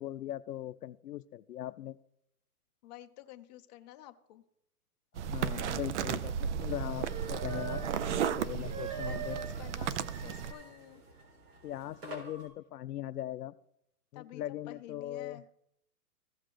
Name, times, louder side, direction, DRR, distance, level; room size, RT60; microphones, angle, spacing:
voice 1, 0.0-2.0 5.2-7.8 8.4-9.4 11.6-13.5 14.1-15.4, left 12 dB, 80° left, 14 dB, 0.6 m, -40 dB
voice 2, 2.8-4.4 8.0-8.5 9.1-11.0 14.1-15.4, left 14 dB, 30° left, 6 dB, 0.7 m, -50 dB
sound 1, 5.2-10.5, right 8 dB, 50° right, 0.6 m, -34 dB
sound 2, 7.0-12.5, right 6 dB, 85° right, 3.8 m, -43 dB
15.5 x 5.9 x 3.3 m, 0.76 s
hypercardioid pair, 140°, 46 cm